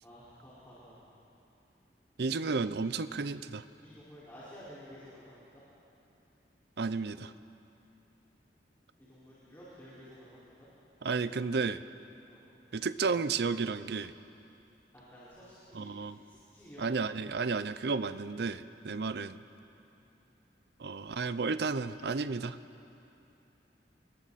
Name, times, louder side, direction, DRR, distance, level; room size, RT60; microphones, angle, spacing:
voice 1, 0.0-1.0 2.2-2.6 3.8-5.6 9.0-10.7 12.2-12.4 14.9-15.9 16.2-17.2 20.0-20.1, equal, 15° left, -11 dB, 4.8 m, -52 dB
voice 2, 2.2-3.6 6.8-7.3 11.0-11.8 12.7-14.1 15.7-16.2 16.8-19.4 20.8-22.6, right 4 dB, 65° right, 13 dB, 0.6 m, -32 dB
29.0 x 21.5 x 4.2 m, 2.9 s
head